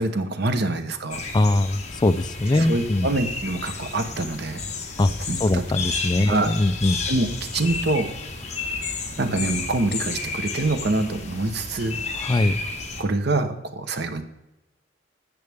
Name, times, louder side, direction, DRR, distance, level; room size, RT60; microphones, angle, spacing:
voice 1, 0.0-1.2 2.6-4.6 5.3-5.6 6.2-6.5 7.1-8.1 9.2-12.0 13.0-14.2, right 2 dB, 60° right, 8 dB, 1.0 m, -25 dB
sound 1, 1.1-13.0, left 4 dB, 40° left, 1.5 m, -32 dB
voice 2, 1.3-3.1 5.0-5.1 5.4-7.0 12.1-12.5, left 2 dB, 25° left, 13 dB, 0.4 m, -21 dB
13.0 x 7.8 x 3.5 m, 0.95 s
head